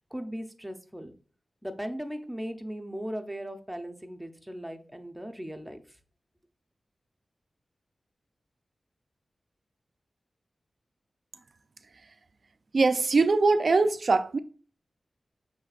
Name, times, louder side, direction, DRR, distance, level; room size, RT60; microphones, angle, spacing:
voice 1, 0.1-1.1 1.6-5.8, equal, 5° right, 0.6 m, -38 dB
voice 2, 12.7-14.4, right 3 dB, 60° right, 0.3 m, -22 dB
6.3 x 3.2 x 2.4 m
wide cardioid pair, 80°, 0 cm